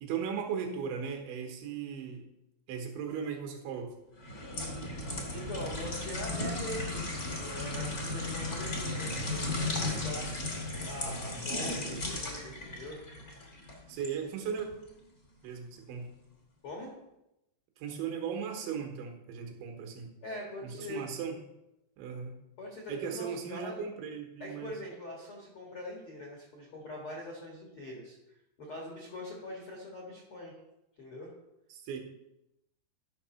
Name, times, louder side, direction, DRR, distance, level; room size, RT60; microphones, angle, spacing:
voice 1, 0.0-2.2 2.7-3.9 11.1-12.0 13.9-14.7 15.4-16.2 17.8-20.1 20.6-21.4 22.0-22.4 22.9-24.8 31.7-32.0, right 7 dB, 80° right, 2 dB, 3.6 m, -37 dB
sound 1, 4.2-14.1 14.6-14.8, left 2 dB, 55° left, 0.9 m, -35 dB
voice 2, 5.3-10.3 10.8-13.0 16.6-16.9 20.2-21.0 22.6-23.8 24.4-28.2 28.6-30.6 31.0-31.3, left 1 dB, 70° left, -3 dB, 1.3 m, -43 dB
12.5 x 6.0 x 4.3 m, 0.89 s
omnidirectional pair, 5.3 m